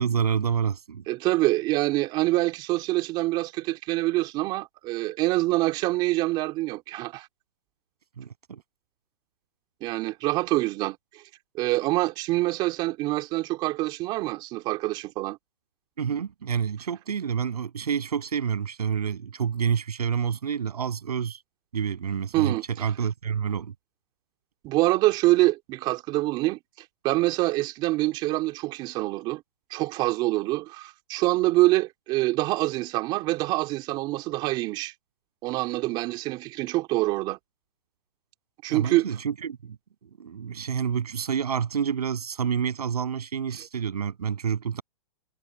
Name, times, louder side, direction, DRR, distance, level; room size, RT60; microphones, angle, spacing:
voice 1, 0.0-1.0 8.2-8.6 16.0-21.4 21.7-23.7 38.7-39.8 40.2-44.8, right 7 dB, 85° right, 7.9 m, -28 dB
voice 2, 1.1-7.3 9.8-11.0 11.5-15.4 22.3-22.6 24.6-26.6 27.0-29.4 29.7-34.9 35.4-37.4 38.6-39.1, right 19 dB, 25° right, 3.7 m, -25 dB
hypercardioid pair, 165°, 19 cm